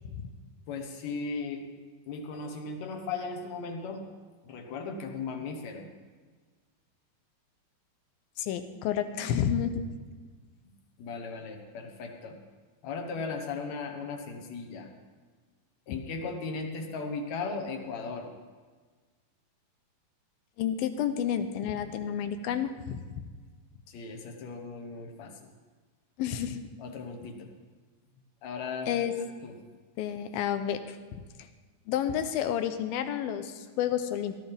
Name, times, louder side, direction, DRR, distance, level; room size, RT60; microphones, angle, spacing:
voice 1, 0.7-1.6 2.1-4.1 4.4-5.9 11.0-12.4 12.8-14.9 15.9-18.3 23.9-25.5 26.8-27.5 28.4-29.5, left 4 dB, 60° left, 3 dB, 2.2 m, -37 dB
voice 2, 8.4-9.9 15.9-16.0 20.6-23.0 26.2-26.7 28.9-29.1 30.0-31.0 31.9-34.3, left 9 dB, 85° left, 9 dB, 2.6 m, -30 dB
17.0 x 13.5 x 3.5 m, 1.4 s
omnidirectional pair, 4.2 m